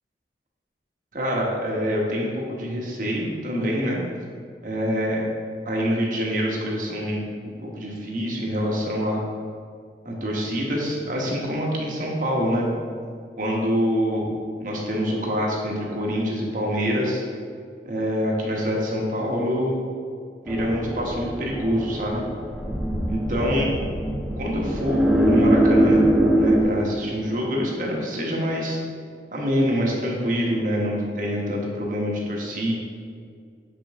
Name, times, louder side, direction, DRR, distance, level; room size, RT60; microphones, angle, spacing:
voice 1, 1.1-4.0 4.6-5.3 5.6-7.3 7.6-9.2 10.0-12.7 13.4-14.3 14.6-17.2 17.8-19.8 20.4-22.2 23.1-23.7 24.4-26.0 26.4-28.8 29.3-32.7, equal, 50° right, -2 dB, 1.3 m, -25 dB
sound 1, 20.5-26.6, right 1 dB, ahead, 0.5 m, -22 dB
7.3 x 5.3 x 3.6 m, 2.2 s
head